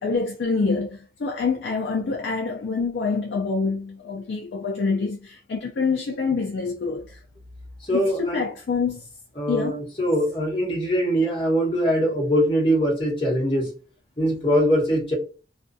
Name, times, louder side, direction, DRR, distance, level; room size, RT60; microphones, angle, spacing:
voice 1, 0.0-7.2 7.9-9.1 9.5-9.8, left 4 dB, 75° left, 0.4 m, -26 dB
voice 2, 7.9-8.4 9.4-13.7 14.2-15.1, equal, 30° left, 1.0 m, -22 dB
2.4 x 2.2 x 2.5 m
head